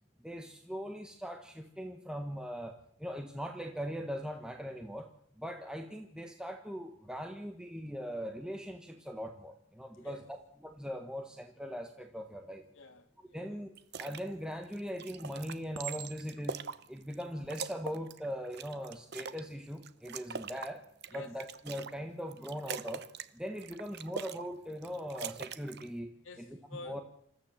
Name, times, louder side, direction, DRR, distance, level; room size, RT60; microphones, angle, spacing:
voice 1, 0.2-2.7 3.0-5.1 5.4-10.2 10.6-12.7 13.3-16.6 16.9-20.8 21.1-23.0 23.3-26.1 26.4-26.5 26.9-27.0, equal, 5° right, 1.3 m, -40 dB
voice 2, 12.7-13.6 21.1-21.4 26.2-27.0, left 2 dB, 65° left, 2.3 m, -49 dB
sound 1, 13.7-14.2 14.6-17.2 17.5-19.4 19.8-21.9 22.3-23.3 23.6-24.5 24.7-25.9, right 5 dB, 50° right, 0.8 m, -42 dB
Chink clink, 14.3-14.8 15.7-16.5 17.3-17.6, right 9 dB, 85° right, 1.2 m, -44 dB
26.5 x 14.5 x 7.4 m
head